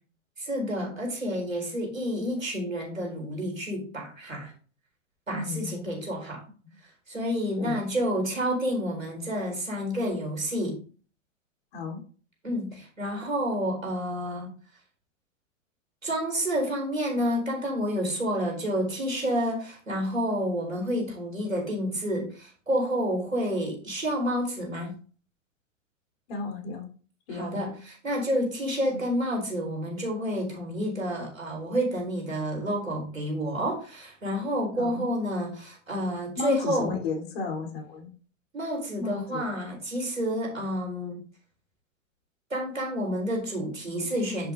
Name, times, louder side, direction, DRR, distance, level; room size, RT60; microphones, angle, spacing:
voice 1, 0.4-4.5 5.3-6.4 7.1-10.8 12.4-14.5 16.0-24.9 27.3-36.9 38.5-41.2 42.5-44.5, equal, 85° right, 1 dB, 4.3 m, -29 dB
voice 2, 5.3-5.7 6.6-6.7 7.6-7.8 11.7-12.0 26.3-26.9 27.3-27.5 28.9-29.0 34.8-35.0 36.4-38.1 39.0-39.4, left 4 dB, 50° left, 1 dB, 3.5 m, -33 dB
10.0 x 8.1 x 2.6 m, 0.40 s
figure-of-eight pair, 105°, 39 cm